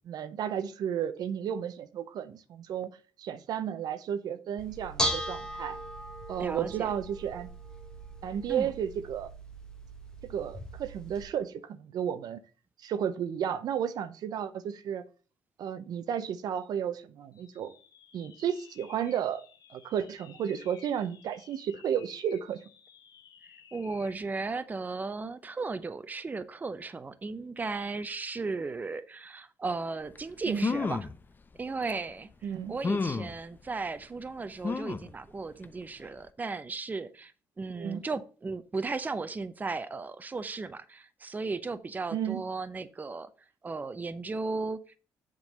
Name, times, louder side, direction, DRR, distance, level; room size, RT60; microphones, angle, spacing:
voice 1, 0.0-2.9 3.2-5.8 6.3-7.5 8.2-9.3 10.2-12.4 12.8-15.0 15.6-17.7 18.1-19.4 19.7-22.6 30.5-30.7 32.4-32.8 37.8-38.0 42.1-42.4, right 9 dB, 70° right, 0.7 m, -33 dB
Bell / Dishes pots and pans, 4.6-11.2, equal, 10° left, 1.2 m, -38 dB
voice 2, 6.4-6.9 8.5-8.7 23.7-31.1 31.6-43.3 43.6-45.0, right 3 dB, 25° right, 0.6 m, -36 dB
sound 1, 17.3-24.3, left 9 dB, 75° left, 1.3 m, -56 dB
sound 2, 30.1-30.2 30.6-31.1 31.9-32.0 32.8-33.3 34.6-35.1 35.6-35.7 36.0-36.1, left 4 dB, 30° left, 0.6 m, -30 dB
7.2 x 3.8 x 6.3 m
cardioid pair, 85°, 7 cm